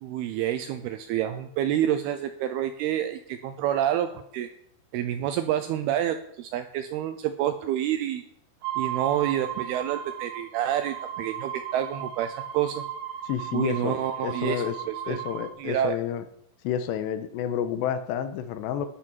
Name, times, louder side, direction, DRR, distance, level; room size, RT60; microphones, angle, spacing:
voice 1, 0.0-4.5 4.9-8.2 8.8-12.8 13.5-15.2 15.6-16.0, right 11 dB, 85° right, 9 dB, 2.3 m, -28 dB
sound 1, 8.6-15.5, right 10 dB, 65° right, 2.3 m, -35 dB
voice 2, 13.2-14.0 14.2-14.8 15.1-16.2 16.6-18.9, left 9 dB, 80° left, 10 dB, 2.9 m, -29 dB
12.5 x 11.5 x 4.6 m, 0.73 s
omnidirectional pair, 5.1 m